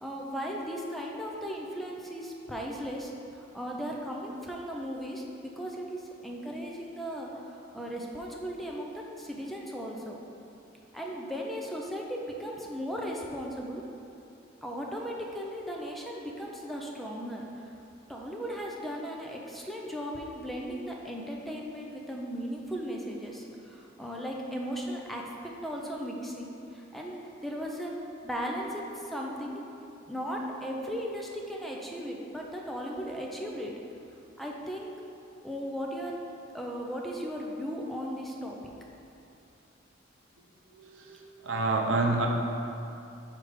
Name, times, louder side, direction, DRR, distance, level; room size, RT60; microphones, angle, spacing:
voice 1, 0.0-10.2 10.9-13.8 14.6-17.6 18.1-25.2 25.6-27.9 28.2-29.6 30.1-33.7 34.4-35.0 35.4-36.1 36.5-38.6, equal, ahead, -2 dB, 0.5 m, -37 dB
voice 2, 40.7-42.3, right 3 dB, 90° right, 2 dB, 0.6 m, -28 dB
6.1 x 3.3 x 4.9 m, 2.8 s
head